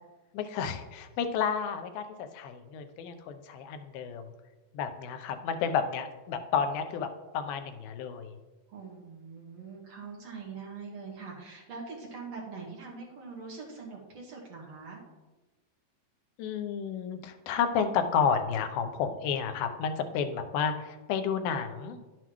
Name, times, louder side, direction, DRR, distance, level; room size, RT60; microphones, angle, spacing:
voice 1, 0.3-4.2 4.7-7.1 7.3-8.4 16.4-22.0, left 7 dB, 85° left, 8 dB, 2.6 m, -31 dB
voice 2, 8.7-15.0, right 4 dB, 55° right, -3 dB, 2.2 m, -43 dB
11.0 x 7.9 x 3.0 m, 1.1 s
omnidirectional pair, 4.1 m